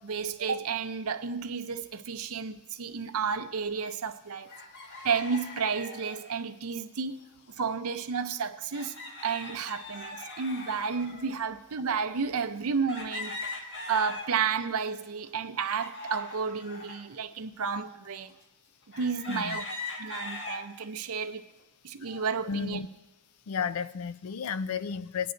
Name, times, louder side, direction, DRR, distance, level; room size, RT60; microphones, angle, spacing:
voice 1, 0.0-4.5 5.0-7.2 7.5-8.9 9.2-13.3 13.9-18.3 19.0-19.6 20.0-21.4 21.8-22.8, right 6 dB, 70° right, 0.6 m, -31 dB
sound 1, 4.5-6.4 7.6-7.7 8.0-8.1 8.7-11.5 12.1-12.2 12.9-14.6 15.1-17.0 17.7-17.8 18.9-20.6 21.2-21.6, left 3 dB, 55° left, 1.7 m, -41 dB
voice 2, 19.3-19.6 22.1-22.2 22.5-22.9 23.5-25.3, left 6 dB, 70° left, 0.4 m, -33 dB
19.5 x 9.3 x 2.6 m
head